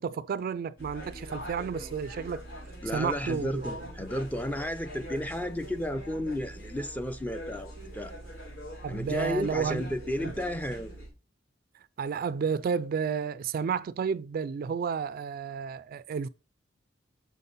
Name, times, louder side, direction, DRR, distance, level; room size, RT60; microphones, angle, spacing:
voice 1, 0.0-2.4 2.9-3.7 8.8-9.9 10.2-10.3 12.0-16.3, right 6 dB, 50° right, 0.3 m, -31 dB
sound 1, 0.8-11.1, right 1 dB, 85° left, 3.9 m, -43 dB
voice 2, 2.8-8.1 8.9-11.0, left 1 dB, 10° left, 0.5 m, -33 dB
6.1 x 5.5 x 4.0 m
head